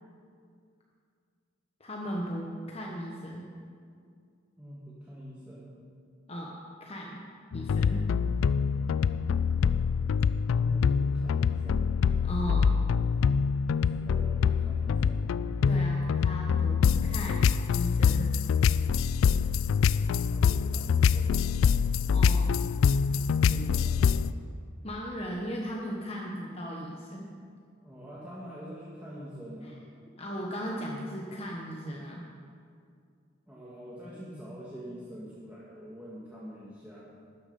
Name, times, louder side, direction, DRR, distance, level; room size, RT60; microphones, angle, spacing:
voice 1, 1.8-3.5 6.3-6.5 6.8-7.2 7.5-8.1 12.2-12.7 15.7-18.3 22.1-22.5 24.8-27.3 29.6-29.7 30.2-32.2, equal, 30° left, -2 dB, 1.1 m, -37 dB
voice 2, 4.6-5.8 10.6-11.9 13.9-15.3 20.3-21.4 23.5-24.1 27.8-29.8 33.5-37.1, equal, 10° right, -8 dB, 1.7 m, -44 dB
sound 1, 7.5-24.3, left 6 dB, 90° left, 0.3 m, -25 dB
13.0 x 10.0 x 5.4 m, 2.2 s
head